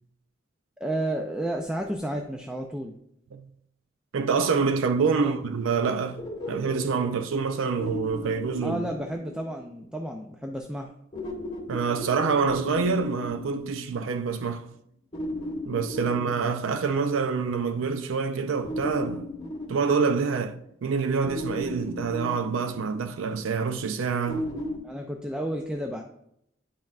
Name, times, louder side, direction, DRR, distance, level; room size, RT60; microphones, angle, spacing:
voice 1, 0.8-3.0 5.2-5.3 8.6-10.9 24.8-26.0, right 1 dB, 5° right, 0.4 m, -32 dB
voice 2, 4.1-6.2 6.5-8.8 11.7-14.6 15.7-19.3 19.7-20.6 20.8-24.5, right 5 dB, 75° right, 0.4 m, -26 dB
sound 1, 6.2-9.8 11.1-14.4 15.1-17.2 18.6-20.7 21.2-23.3 24.3-24.8, left 1 dB, 25° left, 1.7 m, -36 dB
10.0 x 5.5 x 2.4 m
head